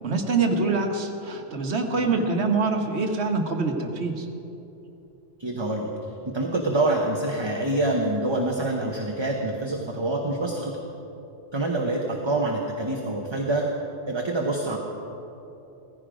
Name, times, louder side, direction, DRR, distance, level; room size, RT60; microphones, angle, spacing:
voice 1, 0.0-4.3, right 4 dB, 60° right, 4 dB, 1.5 m, -25 dB
voice 2, 5.4-5.9 6.2-10.8 11.5-13.7 14.1-14.8, right 2 dB, 25° right, 0 dB, 1.0 m, -26 dB
16.0 x 15.5 x 5.1 m, 2.9 s
omnidirectional pair, 1.3 m